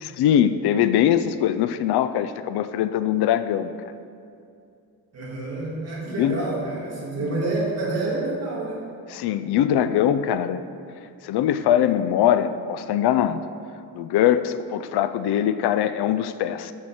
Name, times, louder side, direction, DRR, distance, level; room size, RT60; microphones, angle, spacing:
voice 1, 0.0-3.7 6.1-6.4 7.2-7.4 9.1-10.6 11.2-13.4 13.9-16.7, left 10 dB, 90° left, 12 dB, 0.5 m, -22 dB
voice 2, 5.1-8.9, right 2 dB, 40° right, -5 dB, 1.9 m, -28 dB
7.3 x 6.4 x 5.9 m, 2.5 s
wide cardioid pair, 175°, 38 cm